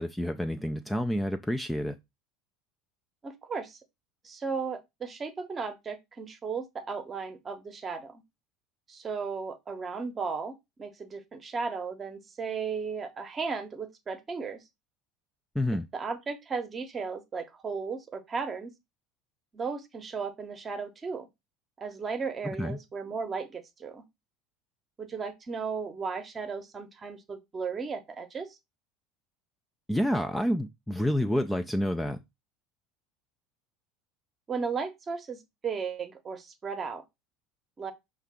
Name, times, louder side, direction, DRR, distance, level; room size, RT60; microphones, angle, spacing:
voice 1, 0.0-1.9 15.6-15.9 22.4-22.8 29.9-32.2, left 1 dB, 5° left, 0.5 m, -29 dB
voice 2, 3.2-3.8 4.2-8.2 8.9-14.6 15.7-18.7 19.5-21.3 21.8-24.0 25.0-28.6 34.5-37.0 37.8-37.9, right 5 dB, 30° right, 0.9 m, -35 dB
5.5 x 2.4 x 3.6 m
hypercardioid pair, 70°, 0 cm